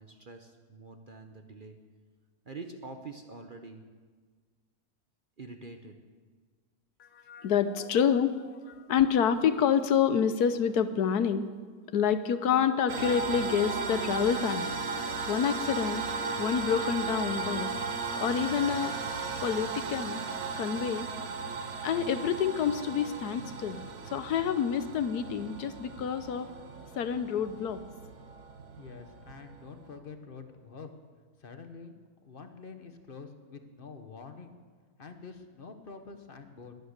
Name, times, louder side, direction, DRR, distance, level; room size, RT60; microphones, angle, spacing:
voice 1, 0.0-1.8 2.5-3.8 5.4-6.0, right 3 dB, 40° right, 5 dB, 0.9 m, -45 dB
voice 2, 7.0-11.5 11.9-14.7 15.3-17.7 18.2-18.9 19.4-21.1 21.8-23.8 24.1-26.5 27.0-27.8, left 7 dB, 80° left, 11 dB, 1.3 m, -28 dB
sound 1, 12.9-30.0, right 4 dB, 65° right, 1.5 m, -36 dB
voice 3, 28.8-30.9 31.4-31.9 32.2-34.5 35.0-36.7, left 5 dB, 40° left, 7 dB, 1.2 m, -46 dB
21.0 x 9.3 x 6.7 m, 1.5 s
omnidirectional pair, 1.7 m